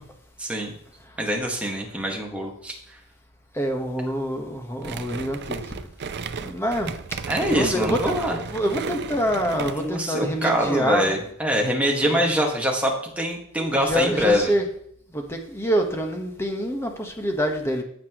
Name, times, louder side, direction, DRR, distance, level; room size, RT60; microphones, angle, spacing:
voice 1, 0.4-0.7 1.2-2.7 7.3-8.4 9.7-14.5, equal, 5° right, 0 dB, 1.8 m, -24 dB
voice 2, 3.5-5.7 6.4-6.9 7.3-11.1 12.0-12.2 13.6-14.6 15.1-17.8, equal, 10° left, 3 dB, 1.3 m, -26 dB
sound 1, 4.8-10.0, right 5 dB, 50° right, 0.5 m, -34 dB
15.0 x 5.9 x 3.1 m, 0.68 s
head